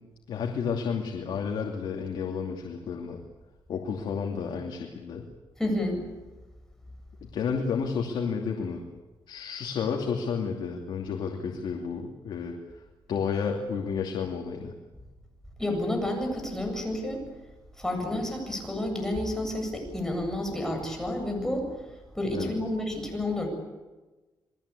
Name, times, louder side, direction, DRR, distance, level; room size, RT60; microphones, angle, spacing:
voice 1, 0.3-3.2 3.7-5.2 7.2-8.8 9.3-12.6 13.1-14.7 22.3-22.5, left 6 dB, 70° left, 1 dB, 2.8 m, -31 dB
voice 2, 5.6-6.0 15.6-17.2 17.8-21.7 22.1-23.5, left 1 dB, 5° left, 2 dB, 7.7 m, -30 dB
28.5 x 21.0 x 8.5 m, 1.2 s
cardioid pair, 120°, 8 cm